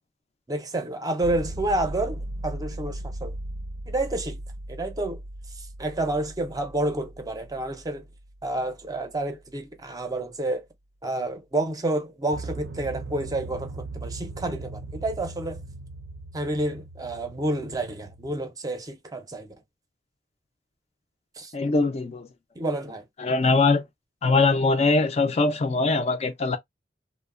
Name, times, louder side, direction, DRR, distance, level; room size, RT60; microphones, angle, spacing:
voice 1, 0.5-3.3 3.9-4.4 4.7-5.2 5.5-8.1 8.4-10.6 11.0-15.6 16.3-19.5 21.4-21.5 22.6-23.0, right 1 dB, 20° right, 0.5 m, -29 dB
sound 1, 1.2-9.0 12.3-18.4, right 2 dB, 85° right, 0.5 m, -38 dB
voice 2, 21.5-22.3 23.2-23.8 24.2-26.6, left 3 dB, 35° left, 0.4 m, -22 dB
2.9 x 2.0 x 2.3 m
head